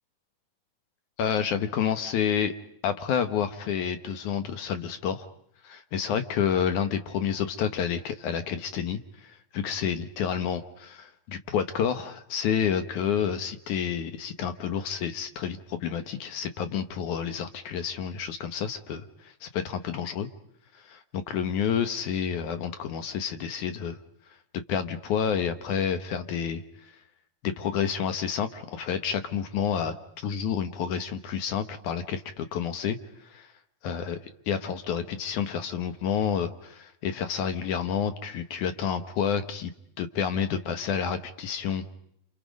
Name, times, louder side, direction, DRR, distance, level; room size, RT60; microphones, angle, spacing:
voice 1, 1.2-2.5 2.8-5.3 5.6-20.3 20.7-24.0 24.7-26.9 27.4-30.0 30.2-33.0 33.3-33.5 33.8-34.2 34.5-39.7 40.0-41.9, left 7 dB, 70° left, 9 dB, 2.0 m, -29 dB
29.5 x 28.0 x 5.2 m, 0.72 s
omnidirectional pair, 4.6 m